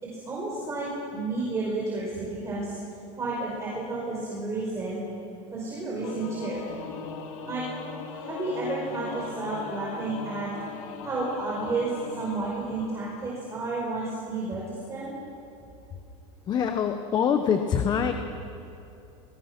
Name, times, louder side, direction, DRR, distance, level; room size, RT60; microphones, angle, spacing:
voice 1, 0.0-2.8 3.2-5.0 5.5-6.6 7.4-7.6 8.1-10.5 11.0-15.1, right 3 dB, 15° right, -5 dB, 5.0 m, -31 dB
Singing / Musical instrument, 6.0-13.8, left 5 dB, 90° left, 2.8 m, -39 dB
voice 2, 16.5-18.1, left 7 dB, 25° left, 7 dB, 1.1 m, -24 dB
29.5 x 22.0 x 6.1 m, 2.9 s
supercardioid pair, 155°, 17 cm